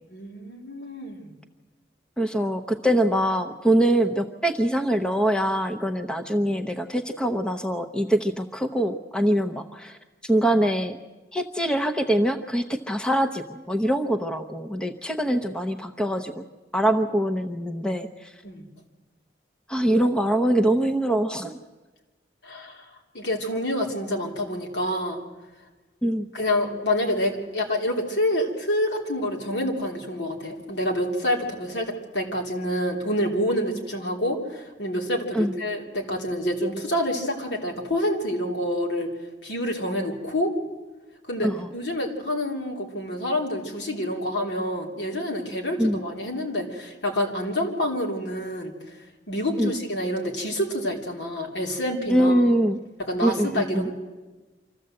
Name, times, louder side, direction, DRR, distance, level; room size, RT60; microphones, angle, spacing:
voice 1, 0.1-1.3 18.4-18.7 22.4-22.8 23.1-25.2 26.3-39.1 39.4-40.5 41.3-48.7 49.3-52.4 53.0-53.9, left 1 dB, 80° left, 1 dB, 3.1 m, -27 dB
voice 2, 2.2-10.0 10.2-11.0 11.3-16.4 16.7-18.3 19.7-21.5 26.0-26.3 35.3-35.5 41.4-41.7 45.8-46.0 49.6-49.7 52.1-52.8 53.2-53.9, right 1 dB, 5° left, 5 dB, 0.8 m, -23 dB
25.5 x 14.5 x 7.7 m, 1.2 s
head